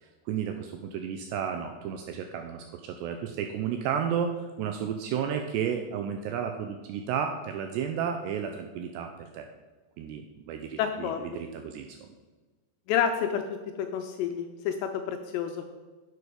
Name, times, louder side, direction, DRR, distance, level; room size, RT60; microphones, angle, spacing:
voice 1, 0.0-9.5 10.0-12.1, right 8 dB, 90° right, 5 dB, 2.5 m, -32 dB
voice 2, 10.8-11.2 12.9-15.6, left 8 dB, 85° left, 6 dB, 2.5 m, -29 dB
10.5 x 6.9 x 5.1 m, 1.3 s
omnidirectional pair, 5.5 m